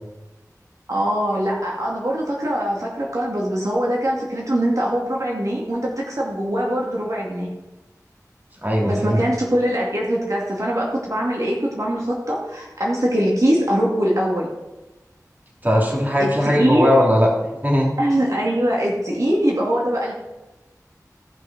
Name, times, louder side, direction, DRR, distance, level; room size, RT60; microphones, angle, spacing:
voice 1, 0.9-7.5 8.9-14.5 16.2-17.0 18.0-20.1, equal, 55° right, -3 dB, 2.3 m, -22 dB
voice 2, 8.6-9.2 15.6-17.3 17.6-17.9, equal, 25° right, -1 dB, 3.1 m, -18 dB
14.5 x 5.8 x 6.0 m, 1.0 s
wide cardioid pair, 45°, 6 cm